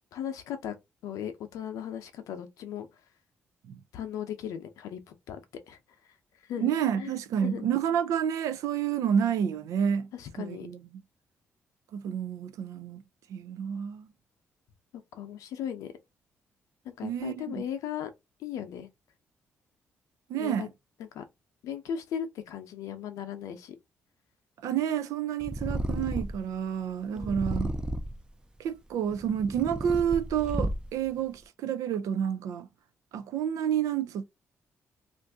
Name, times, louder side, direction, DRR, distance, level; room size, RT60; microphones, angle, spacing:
voice 1, 0.1-0.7 1.0-2.9 3.9-5.0 5.3-5.8 6.5-7.2 7.4-7.6 10.1-10.7 15.1-15.9 16.8-18.1 18.4-18.9 20.3-20.7 21.0-21.2 21.6-23.8 27.1-27.5, left 9 dB, 80° left, 0.6 m, -37 dB
voice 2, 6.6-10.1 10.4-10.8 11.9-13.0 13.3-14.1 17.0-17.5 20.3-20.7 24.6-27.7 28.6-32.7 33.1-34.2, right 8 dB, 80° right, 0.4 m, -29 dB
Purr, 25.4-26.5 27.2-28.3 29.0-31.1, right 1 dB, 15° right, 0.5 m, -32 dB
2.5 x 2.5 x 3.4 m
supercardioid pair, 60°, 6 cm